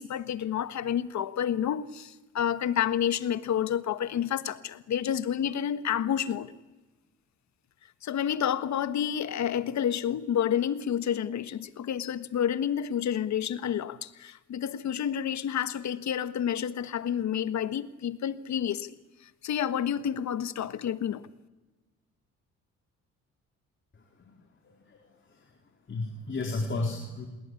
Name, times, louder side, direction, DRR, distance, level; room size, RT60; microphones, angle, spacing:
voice 1, 0.0-6.5 8.0-21.2, left 9 dB, 65° left, 1.5 m, -29 dB
voice 2, 24.6-25.0 25.9-27.3, left 2 dB, 40° left, 4.0 m, -33 dB
28.5 x 20.5 x 9.8 m
cardioid pair, 90°, 30 cm